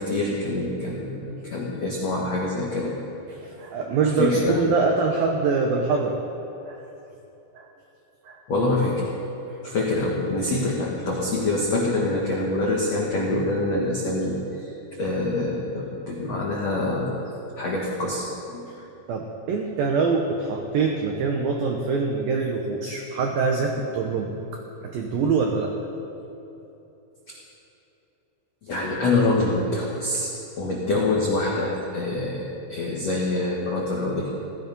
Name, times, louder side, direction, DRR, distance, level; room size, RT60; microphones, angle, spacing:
voice 1, 0.0-3.0 4.2-4.6 8.5-9.0 9.6-14.7 15.0-17.1 17.6-18.7 28.7-30.3 30.6-34.3, left 2 dB, 80° left, -3 dB, 1.4 m, -25 dB
voice 2, 3.3-6.2 6.7-6.8 7.5-7.7 8.2-8.4 19.1-24.3 24.8-25.8, right 4 dB, 85° right, 2 dB, 2.0 m, -24 dB
17.0 x 14.5 x 5.4 m, 3.0 s
omnidirectional pair, 5.7 m